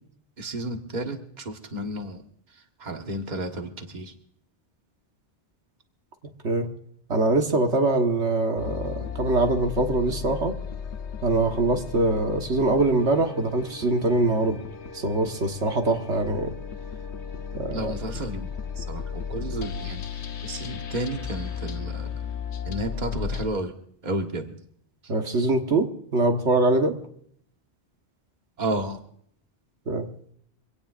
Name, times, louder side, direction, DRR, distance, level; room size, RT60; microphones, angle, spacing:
voice 1, 0.4-2.2 2.5-4.1 17.7-22.3 22.6-23.7 24.0-24.6 25.0-25.1 28.6-29.0, right 1 dB, 40° right, 4 dB, 1.6 m, -32 dB
voice 2, 7.1-10.5 11.2-14.6 14.9-16.5 17.6-17.9 25.1-27.0 29.9-30.1, right 2 dB, 80° right, 4 dB, 1.7 m, -23 dB
sound 1, 8.6-23.5, left 7 dB, 80° left, 1.2 m, -35 dB
25.0 x 17.5 x 2.5 m, 0.65 s
omnidirectional pair, 1.2 m